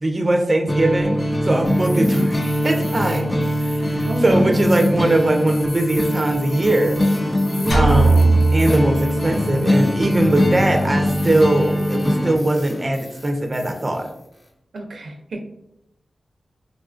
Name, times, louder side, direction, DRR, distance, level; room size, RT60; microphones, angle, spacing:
voice 1, 0.0-1.2 1.4-2.3 2.6-7.0 7.7-14.1, right 1 dB, 35° right, 4 dB, 0.5 m, -20 dB
sound 1, 0.7-12.4, equal, 25° left, 0.4 m, -22 dB
sound 2, 1.4-14.5, left 1 dB, 60° left, 0.8 m, -37 dB
voice 2, 1.9-2.3 4.1-4.6 7.6-8.2 14.7-15.4, right 1 dB, 85° right, 2 dB, 0.5 m, -27 dB
sound 3, 7.7-9.6, right 3 dB, 85° left, 1.2 m, -17 dB
3.7 x 2.4 x 2.4 m, 0.79 s
cardioid pair, 60°, 0 cm